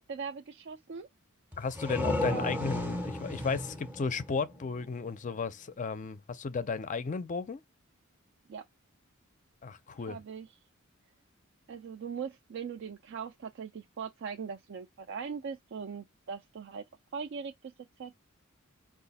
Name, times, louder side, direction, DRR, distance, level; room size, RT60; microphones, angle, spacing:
voice 1, 0.1-1.1 2.2-2.8 8.5-8.7 10.1-10.5 11.7-16.9 17.1-17.7 18.0-18.2, right 6 dB, 55° right, 0.4 m, -40 dB
sound 1, 1.5-5.1, left 1 dB, 10° right, 0.6 m, -35 dB
voice 2, 1.6-7.6 9.6-10.2, left 5 dB, 35° left, 0.4 m, -34 dB
4.7 x 2.4 x 4.0 m
head